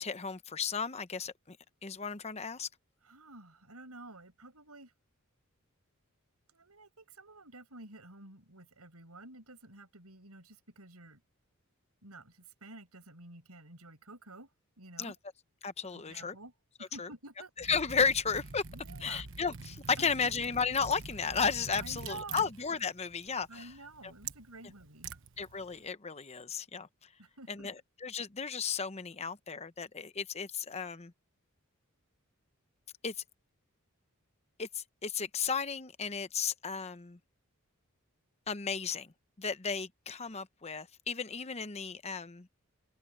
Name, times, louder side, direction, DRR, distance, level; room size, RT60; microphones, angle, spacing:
voice 1, 0.0-1.6 1.8-2.7 15.0-15.1 15.6-16.4 17.0-17.1 17.6-18.6 19.0-23.6 25.4-26.9 27.5-27.7 28.0-31.1 33.0-33.1 34.6-37.2 38.5-39.1 39.4-42.5, left 5 dB, 30° left, 0.8 m, -34 dB
voice 2, 3.0-4.9 6.5-11.2 12.0-14.5 14.8-15.1 15.8-16.5 16.8-17.5 18.7-19.2 20.0-20.3 21.8-22.5 23.5-25.1 27.2-27.7, right 2 dB, 85° right, 6.5 m, -50 dB
Liquid, 17.6-25.9, right 5 dB, 60° right, 1.2 m, -46 dB
open air
head